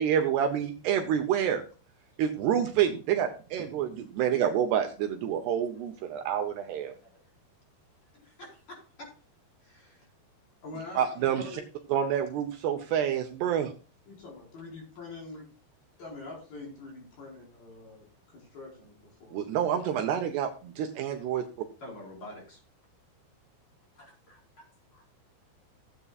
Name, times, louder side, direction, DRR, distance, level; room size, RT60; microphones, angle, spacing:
voice 1, 0.0-1.6 2.2-7.0 11.0-11.6 11.9-13.7 19.3-21.4, right 9 dB, 75° right, 5 dB, 2.7 m, -28 dB
voice 2, 8.1-9.1 9.6-10.1 15.3-15.4 21.8-22.6 23.9-24.4 24.9-25.0, left 1 dB, 30° left, -2 dB, 4.8 m, -48 dB
voice 3, 10.6-11.6 14.1-15.4 16.0-18.1 18.3-19.6, left 3 dB, 55° left, -2 dB, 6.2 m, -44 dB
16.0 x 8.5 x 2.4 m, 0.37 s
omnidirectional pair, 5.3 m